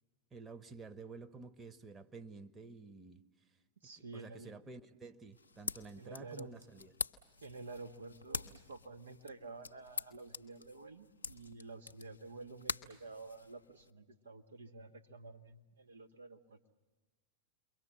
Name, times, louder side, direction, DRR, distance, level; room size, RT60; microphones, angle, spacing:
voice 1, 0.3-3.2 3.8-6.9, right 4 dB, 20° right, 1.3 m, -51 dB
voice 2, 3.8-4.5 6.0-6.5 7.4-16.6, right 3 dB, 75° right, 1.4 m, -50 dB
sound 1, 5.3-13.9, left 3 dB, 80° left, 0.7 m, -46 dB
28.5 x 23.0 x 7.4 m
figure-of-eight pair, 85°, 0 cm